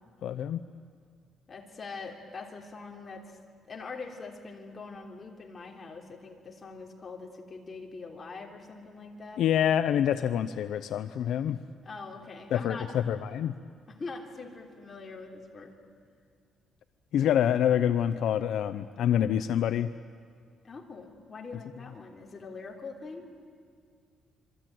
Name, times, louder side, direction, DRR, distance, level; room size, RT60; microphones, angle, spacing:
voice 1, 0.2-0.6 9.4-11.6 12.5-13.5 17.1-19.9, left 10 dB, 65° left, 11 dB, 0.6 m, -26 dB
voice 2, 1.5-3.4 3.7-9.4 11.8-13.1 14.0-15.7 20.6-23.3, left 4 dB, 25° left, 0 dB, 3.2 m, -43 dB
26.5 x 23.0 x 9.3 m, 2.1 s
cardioid pair, 160°, 0 cm